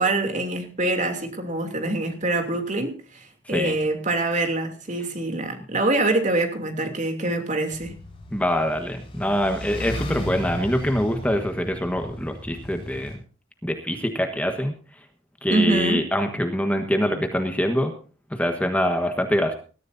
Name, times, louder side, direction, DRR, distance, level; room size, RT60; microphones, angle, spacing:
voice 1, 0.0-3.0 3.5-8.0 15.5-16.1, right 2 dB, 40° right, 5 dB, 2.9 m, -24 dB
sound 1, 7.7-13.2, equal, 30° left, 5.7 m, -35 dB
voice 2, 8.3-13.2 13.6-14.7 15.4-17.9 18.3-19.5, equal, 5° left, 5 dB, 1.4 m, -24 dB
20.5 x 14.0 x 2.7 m, 0.37 s
head